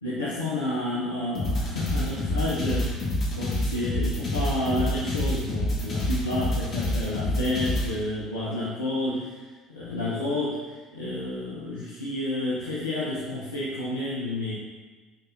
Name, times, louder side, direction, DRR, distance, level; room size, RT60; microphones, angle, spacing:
voice 1, 0.0-2.9 3.3-9.3 9.7-10.6 10.9-14.5, left 1 dB, 90° left, -9 dB, 1.1 m, -30 dB
sound 1, 1.3-7.9, left 1 dB, 50° left, 2.1 m, -27 dB
7.5 x 4.1 x 4.3 m, 1.3 s
hypercardioid pair, 60°, 0 cm